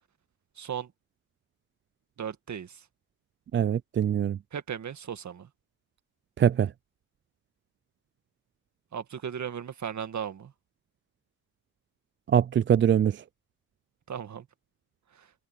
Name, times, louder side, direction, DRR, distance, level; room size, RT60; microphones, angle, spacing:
voice 1, 0.6-0.9 2.2-2.9 4.5-5.5 8.9-10.5 14.1-14.5 15.1-15.3, right 8 dB, 45° right, 1.9 m, -36 dB
voice 2, 3.5-4.4 6.4-6.7 12.3-13.2, right 9 dB, 30° right, 0.4 m, -23 dB
cardioid pair, 80°, 38 cm